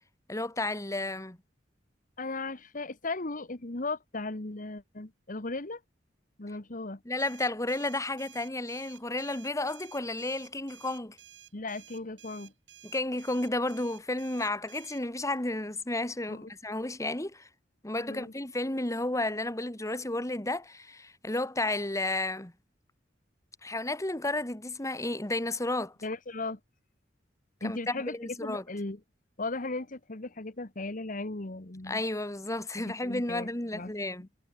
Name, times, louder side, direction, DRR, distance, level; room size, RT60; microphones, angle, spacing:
voice 1, 0.3-1.4 7.1-11.2 12.8-17.5 17.8-22.5 23.6-25.9 27.6-28.6 31.9-34.3, left 2 dB, 15° left, 2.0 m, -32 dB
voice 2, 2.2-5.8 6.4-7.0 11.5-12.5 16.3-16.5 18.1-18.3 26.0-26.6 27.6-29.0 29.4-32.0 32.8-34.1, left 2 dB, 45° left, 1.6 m, -37 dB
sound 1, 7.2-15.0, right 11 dB, 75° right, 6.2 m, -54 dB
head